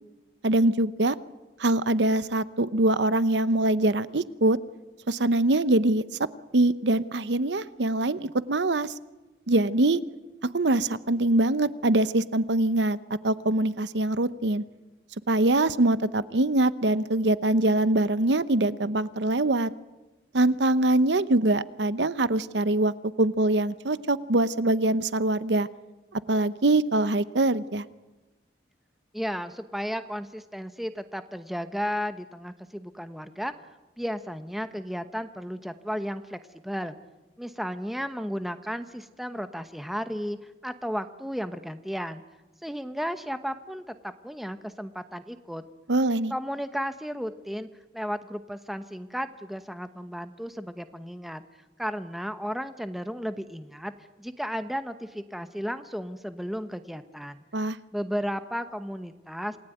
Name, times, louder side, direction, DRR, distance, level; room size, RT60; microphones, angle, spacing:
voice 1, 0.4-1.1 1.6-4.6 5.1-6.0 6.5-8.9 9.5-10.0 10.4-13.0 13.2-14.6 15.3-19.7 20.3-22.9 23.2-25.7 26.1-27.8 45.9-46.3 57.5-57.8, right 2 dB, 80° right, 15 dB, 0.8 m, -23 dB
voice 2, 29.1-33.5 34.0-37.0 37.4-40.4 40.6-42.2 42.6-45.6 46.3-47.7 47.9-51.4 51.8-53.9 54.2-57.4 57.9-59.6, equal, ahead, 9 dB, 1.0 m, -34 dB
27.5 x 19.0 x 9.2 m, 1.1 s
head